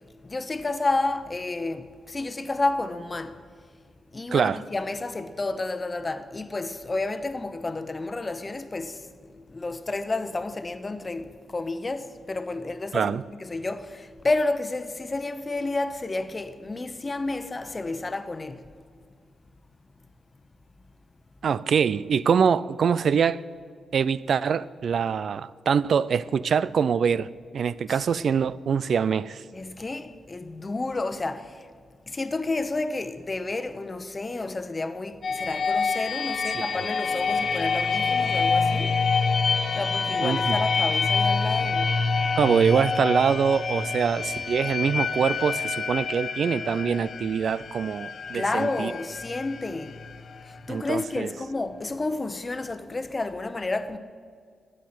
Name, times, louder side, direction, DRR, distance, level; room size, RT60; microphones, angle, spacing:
voice 1, 0.2-3.4 4.1-18.7 27.9-28.0 29.5-31.7 32.1-39.0 39.7-42.0 48.3-50.0 50.4-54.0, left 2 dB, 30° left, 1.0 m, -31 dB
voice 2, 21.4-23.4 23.9-27.3 27.5-29.4 36.6-36.7 40.2-40.6 42.4-48.9 50.7-51.3, right 7 dB, 65° right, 0.3 m, -24 dB
sound 1, 35.2-50.9, left 4 dB, 55° left, 0.9 m, -27 dB
13.5 x 9.3 x 7.7 m
cardioid pair, 65°, 0 cm